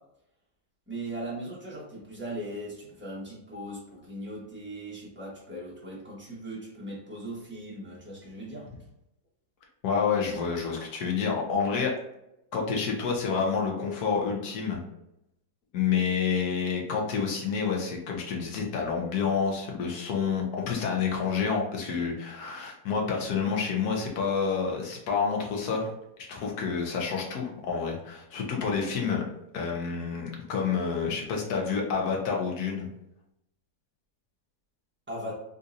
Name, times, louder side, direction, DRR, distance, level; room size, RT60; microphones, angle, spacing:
voice 1, 0.9-8.7 35.1-35.4, right 1 dB, 10° right, -6 dB, 0.9 m, -39 dB
voice 2, 9.8-11.9 12.5-14.8 15.7-25.9 26.2-29.2 29.5-32.9, left 6 dB, 70° left, 0 dB, 1.3 m, -28 dB
3.8 x 2.7 x 2.5 m, 0.84 s
omnidirectional pair, 1.8 m